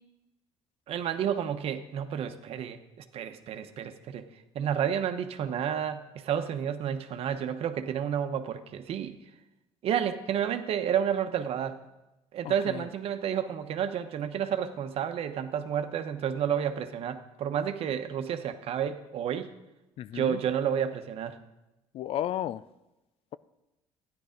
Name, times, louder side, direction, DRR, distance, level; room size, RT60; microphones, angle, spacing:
voice 1, 0.9-4.3 4.5-9.2 9.8-11.8 12.3-19.5 20.1-21.4, right 8 dB, 60° right, 1.0 m, -30 dB
voice 2, 12.4-12.9 20.0-20.4 21.9-22.6, left 11 dB, 55° left, 0.4 m, -33 dB
13.5 x 10.5 x 5.2 m
cardioid pair, 105°, 11 cm